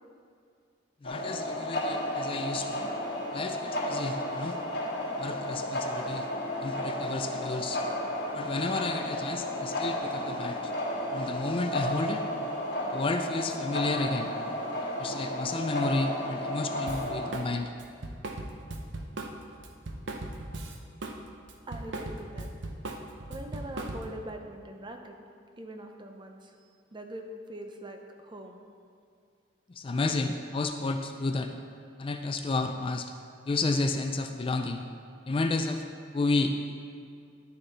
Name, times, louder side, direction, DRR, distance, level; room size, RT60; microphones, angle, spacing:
sound 1, 1.0-17.3, left 1 dB, 60° left, 1.5 m, -33 dB
voice 1, 1.0-2.9 3.3-4.6 5.2-6.3 6.6-7.8 8.3-10.7 11.1-12.2 12.9-14.3 15.0-17.7 29.7-31.5 32.0-33.1 33.5-34.8 35.3-35.8 36.1-36.5, left 3 dB, 30° left, 6 dB, 0.4 m, -31 dB
Drum kit, 16.9-17.5 17.8-21.2 21.5-24.2, right 2 dB, 75° right, 0.8 m, -38 dB
voice 2, 21.7-22.5 23.3-25.2 25.6-26.5 26.9-27.2 27.5-28.6, right 1 dB, 25° right, 4 dB, 0.7 m, -42 dB
10.5 x 6.9 x 4.1 m, 2.3 s
head